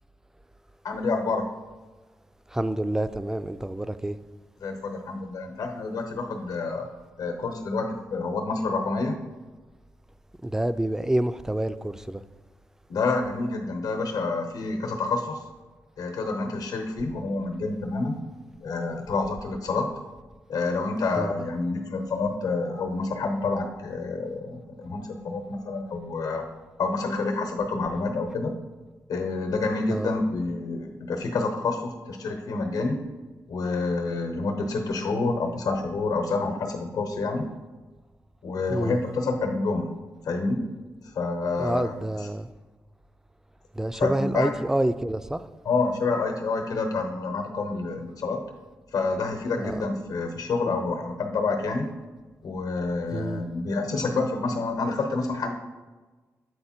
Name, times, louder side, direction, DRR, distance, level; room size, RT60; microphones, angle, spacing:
voice 1, 0.8-1.4 4.6-6.9 7.2-9.1 12.9-15.4 16.0-18.2 18.6-19.9 20.5-26.4 26.8-28.5 29.1-33.0 33.5-37.5 38.4-39.9 40.2-40.6 41.0-41.9 43.9-44.1 44.3-44.5 45.6-48.4 48.9-51.9 52.4-55.5, left 3 dB, 85° left, 0.9 m, -28 dB
voice 2, 2.5-4.2 10.4-12.2 21.2-21.3 29.9-30.1 38.7-39.0 41.6-42.5 43.7-45.5 49.6-49.7 53.1-53.4, right 1 dB, 10° right, 0.3 m, -27 dB
8.0 x 4.2 x 4.3 m
cardioid pair, 80°, 6 cm